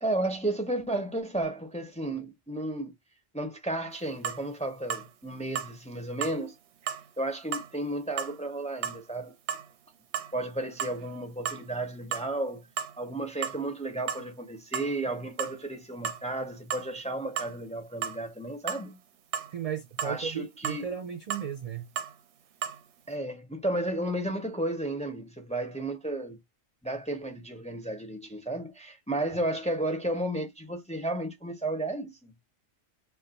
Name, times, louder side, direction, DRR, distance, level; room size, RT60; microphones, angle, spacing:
voice 1, 0.0-2.9 3.3-6.6 7.2-9.4 10.3-12.6 13.0-19.0 20.0-20.9 23.1-26.4 26.8-32.3, right 1 dB, 10° left, 0.5 m, -33 dB
sound 1, 4.2-4.4 4.9-5.1 5.6-5.7 6.2-6.4 6.9-7.1 7.5-7.7 8.2-8.4 8.8-9.0 9.5-9.7 10.1-10.3 10.7-11.1 11.5-11.6 12.1-12.3 12.8-13.0 13.4-13.6 14.1-14.3 14.7-14.9 15.4-15.6 16.0-16.2 16.7-16.9 17.4-17.6 18.0-18.2 18.7-18.9 19.3-19.5 20.0-20.2 20.6-20.8 21.3-21.5 22.0-22.1 22.6-22.8, right 9 dB, 85° right, 0.9 m, -33 dB
voice 2, 19.5-21.9, right 8 dB, 50° right, 0.4 m, -35 dB
2.5 x 2.3 x 4.0 m
omnidirectional pair, 1.1 m